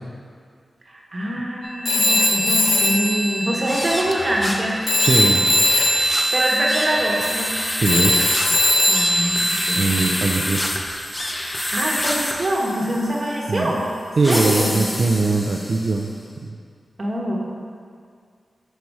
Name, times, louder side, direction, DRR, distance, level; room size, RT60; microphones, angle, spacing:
voice 1, 0.9-4.8 6.3-7.5 8.9-9.9 11.7-13.9 14.3-14.8 17.0-17.4, right 1 dB, 40° right, -3 dB, 1.2 m, -24 dB
Telephone, 1.8-4.6 4.9-10.1, left 1 dB, 65° left, 1.0 m, -20 dB
sound 1, 3.6-16.1, left 1 dB, 20° left, 0.6 m, -28 dB
voice 2, 5.0-5.5 7.7-8.1 9.7-10.6 13.5-13.7 14.2-16.1 16.4-16.6, right 3 dB, 60° right, -1 dB, 0.4 m, -21 dB
5.4 x 4.5 x 4.7 m, 2.1 s
cardioid pair, 70°, 0 cm